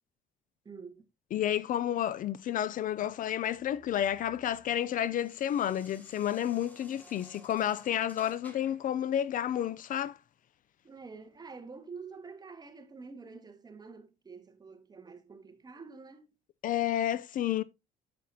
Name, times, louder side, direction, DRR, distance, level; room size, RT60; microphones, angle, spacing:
voice 1, 0.6-1.0 10.8-16.3, right 4 dB, 25° right, 1.5 m, -47 dB
voice 2, 1.3-10.2 16.6-17.6, left 11 dB, 55° left, 0.5 m, -31 dB
sound 1, 3.1-8.9, left 1 dB, 10° left, 2.2 m, -57 dB
9.4 x 7.6 x 2.7 m
cardioid pair, 110°, 17 cm